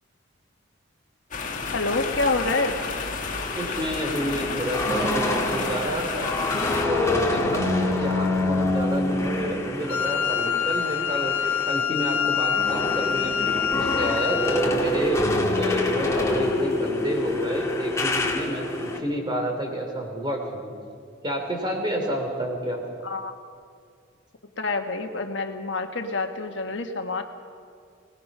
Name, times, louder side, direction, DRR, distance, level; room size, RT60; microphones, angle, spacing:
sound 1, 1.3-6.9, left 4 dB, 35° left, 1.7 m, -31 dB
voice 1, 1.7-2.7 23.0-23.3 24.6-27.2, left 3 dB, 60° left, 5 dB, 1.5 m, -27 dB
sound 2, 3.4-11.8 12.1-19.0, left 2 dB, 15° left, 1.7 m, -27 dB
voice 2, 3.5-6.3 6.8-15.2 15.5-20.7 21.2-22.8, equal, 20° right, 2 dB, 3.1 m, -29 dB
Wind instrument woodwind instrument, 9.9-14.7, left 8 dB, 90° left, 1.5 m, -26 dB
24.5 x 19.5 x 5.6 m, 2.2 s
head